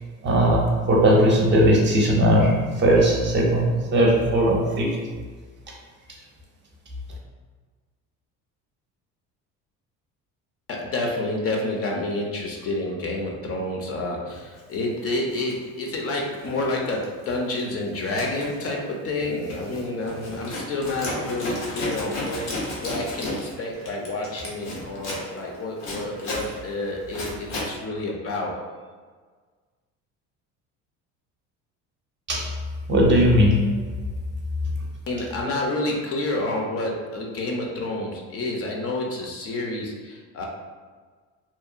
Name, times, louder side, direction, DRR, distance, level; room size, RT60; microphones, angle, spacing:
voice 1, 0.2-5.0 32.3-32.5 32.9-33.6, equal, 30° right, -2 dB, 0.6 m, -18 dB
voice 2, 10.7-28.6 35.1-40.4, left 2 dB, 40° left, 0 dB, 0.5 m, -29 dB
Zipper (clothing), 14.6-14.7 15.3-16.7 16.9-17.3 17.6-27.7, left 1 dB, 85° left, 0.9 m, -34 dB
2.8 x 2.0 x 2.4 m, 1.5 s
supercardioid pair, 100°, 35 cm